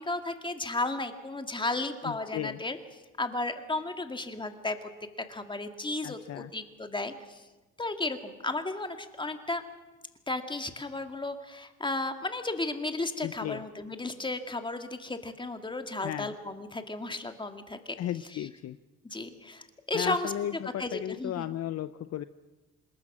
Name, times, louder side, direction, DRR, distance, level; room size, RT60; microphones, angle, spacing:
voice 1, 0.0-2.8 3.2-4.9 5.3-7.4 7.8-9.6 10.3-18.0 18.4-18.5 19.0-20.3 20.8-21.5, left 2 dB, 15° left, 7 dB, 2.3 m, -34 dB
voice 2, 2.0-2.6 6.0-6.5 13.2-13.6 16.0-16.3 18.0-18.8 19.9-22.2, left 12 dB, 55° left, 13 dB, 0.7 m, -35 dB
26.5 x 20.5 x 6.3 m, 1.1 s
cardioid pair, 90°, 31 cm